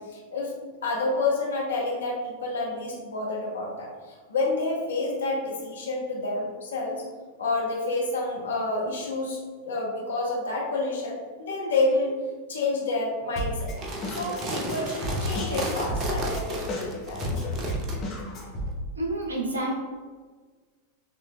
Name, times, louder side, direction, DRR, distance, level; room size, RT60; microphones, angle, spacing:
voice 1, 0.1-7.0 7.4-9.4 9.6-12.1 12.5-13.7 14.1-17.2, left 2 dB, 65° left, -2 dB, 1.0 m, -29 dB
Drum kit, 13.4-18.7, left 1 dB, 35° left, 1.1 m, -32 dB
sound 1, 13.7-18.0, right 1 dB, 35° right, 0.8 m, -33 dB
voice 2, 18.9-19.8, right 1 dB, 75° right, 0 dB, 0.9 m, -28 dB
6.1 x 3.1 x 2.3 m, 1.4 s
figure-of-eight pair, 90°, 0 cm